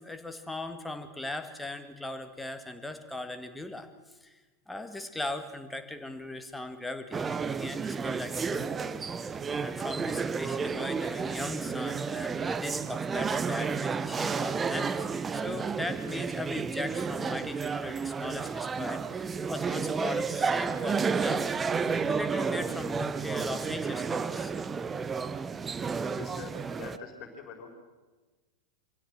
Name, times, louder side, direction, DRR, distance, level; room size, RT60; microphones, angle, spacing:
voice 1, 0.0-3.9 4.2-4.3 4.7-9.0 9.6-15.1 15.3-21.5 22.1-24.5, left 2 dB, 5° left, 7 dB, 1.7 m, -38 dB
sound 1, 7.1-27.0, right 5 dB, 15° right, 0.7 m, -31 dB
voice 2, 25.9-27.7, left 5 dB, 35° left, 2 dB, 4.3 m, -45 dB
24.5 x 16.0 x 7.6 m, 1.2 s
figure-of-eight pair, 90°, 0 cm